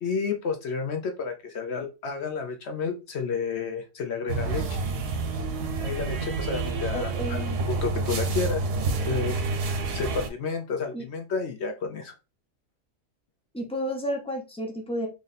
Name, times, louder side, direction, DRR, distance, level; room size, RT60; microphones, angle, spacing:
voice 1, 0.0-4.8 5.8-8.6 9.1-9.4 9.6-12.1, left 5 dB, 60° left, 4 dB, 0.7 m, -31 dB
sound 1, 4.3-10.3, right 3 dB, 85° right, 1.3 m, -28 dB
voice 2, 6.9-7.6 10.9-11.0 13.5-15.1, equal, 5° left, 1 dB, 0.4 m, -31 dB
3.3 x 2.6 x 3.9 m, 0.28 s
omnidirectional pair, 1.6 m